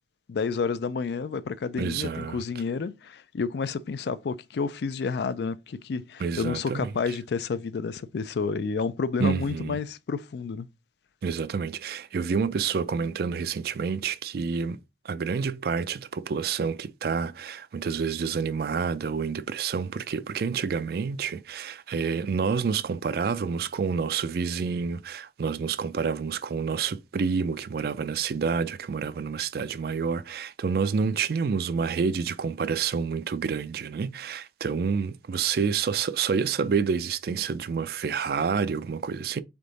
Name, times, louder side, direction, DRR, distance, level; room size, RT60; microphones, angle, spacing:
voice 1, 0.3-10.7, left 5 dB, 70° left, 0.4 m, -30 dB
voice 2, 1.8-2.4 6.2-6.9 9.2-9.8 11.2-14.8 15.0-39.4, right 6 dB, 55° right, 0.3 m, -28 dB
3.7 x 3.5 x 4.0 m
head